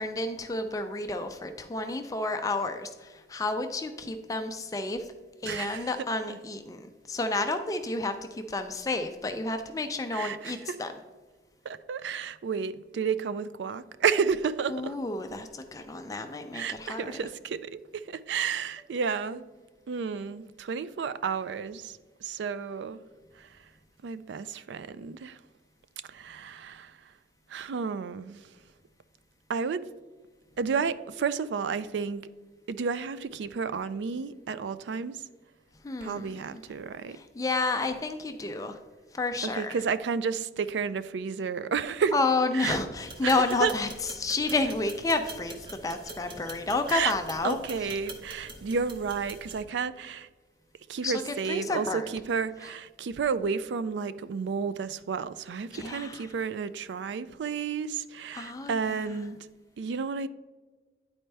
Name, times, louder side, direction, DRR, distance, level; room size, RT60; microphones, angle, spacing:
voice 1, 0.0-5.1 5.4-10.9 14.7-17.2 35.8-36.6 37.1-38.8 39.1-39.8 42.1-47.6 51.0-52.1 55.7-56.3 58.3-59.2, left 3 dB, 20° left, 6 dB, 0.3 m, -31 dB
voice 2, 5.4-5.9 10.1-10.8 11.6-15.0 16.5-19.4 19.9-23.0 23.4-23.5 24.0-25.4 26.1-27.0 27.5-28.4 29.5-29.8 30.6-32.3 32.7-35.2 36.0-37.2 39.4-42.1 42.5-42.8 43.2-43.3 43.6-43.7 46.9-47.1 47.4-50.3 50.9-59.4 59.8-60.3, right 6 dB, 85° right, 15 dB, 0.4 m, -31 dB
sound 1, 43.0-49.6, right 2 dB, 25° right, 0.8 m, -44 dB
10.0 x 4.3 x 3.3 m, 1.3 s
head